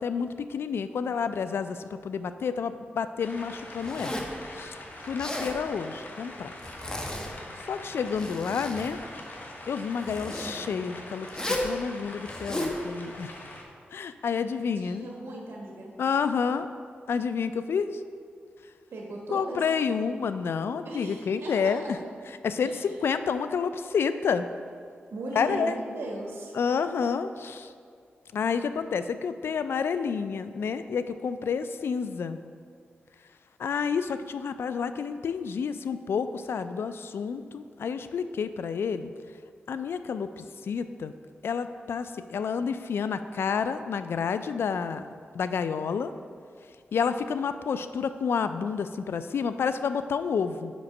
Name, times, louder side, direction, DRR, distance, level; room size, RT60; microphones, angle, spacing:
voice 1, 0.0-4.2 4.5-4.8 5.0-6.5 7.7-9.0 9.7-13.3 13.9-15.1 16.0-16.7 17.1-18.0 19.3-22.0 22.3-24.5 25.4-25.8 26.5-27.7 28.3-32.4 33.6-39.1 39.7-41.1 41.4-45.1 45.3-46.1 46.9-50.7, left 6 dB, 75° left, 11 dB, 0.3 m, -29 dB
sound 1, 3.2-13.6, left 1 dB, 55° left, 1.1 m, -43 dB
Zipper (clothing), 3.8-4.4 5.0-5.6 6.6-7.3 7.9-8.9 10.0-10.6 11.3-11.7 12.2-12.8, left 1 dB, 20° left, 1.0 m, -34 dB
voice 2, 14.8-15.9 18.9-19.6 20.8-21.9 22.6-22.8 25.1-26.6, right 1 dB, 80° right, -1 dB, 1.2 m, -37 dB
5.2 x 5.1 x 5.8 m, 2.2 s
cardioid pair, 65°, 4 cm